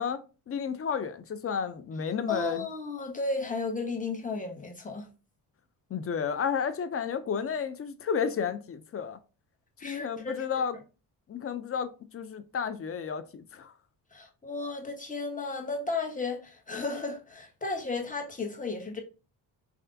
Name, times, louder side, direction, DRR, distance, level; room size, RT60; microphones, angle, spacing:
voice 1, 0.0-2.6 5.9-9.2 9.8-10.8 11.3-13.7, left 7 dB, 30° left, 0.4 m, -32 dB
voice 2, 2.3-5.1 9.8-10.6 14.1-19.0, left 3 dB, 15° left, 1.0 m, -34 dB
3.3 x 2.4 x 2.5 m
supercardioid pair, 55°, 47 cm